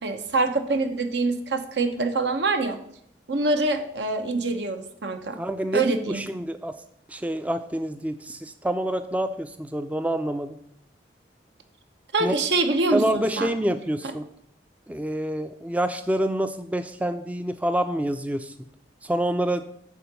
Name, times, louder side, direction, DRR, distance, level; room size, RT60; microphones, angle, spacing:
voice 1, 0.0-2.8 3.3-5.4 5.7-6.2 12.1-13.5, right 3 dB, 75° right, 6 dB, 1.0 m, -25 dB
voice 2, 5.4-6.8 7.1-10.6 12.2-12.3 12.9-14.3 14.9-18.5 19.0-19.6, right 1 dB, 10° right, 10 dB, 0.3 m, -27 dB
9.2 x 3.9 x 6.9 m, 0.70 s
head